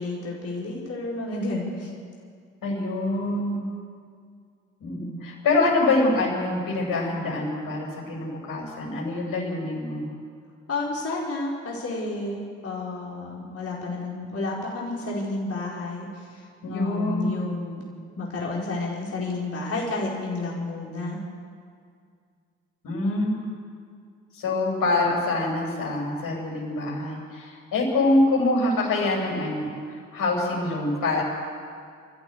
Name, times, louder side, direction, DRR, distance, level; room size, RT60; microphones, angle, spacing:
voice 1, 0.0-1.9 10.7-17.8 18.2-21.2, left 2 dB, 35° left, -4 dB, 4.8 m, -31 dB
voice 2, 2.6-3.7 4.8-10.1 16.6-17.3 22.8-23.4 24.3-31.2, left 2 dB, 60° left, -2 dB, 6.9 m, -25 dB
28.0 x 14.5 x 8.0 m, 2.2 s
figure-of-eight pair, 45°, 38 cm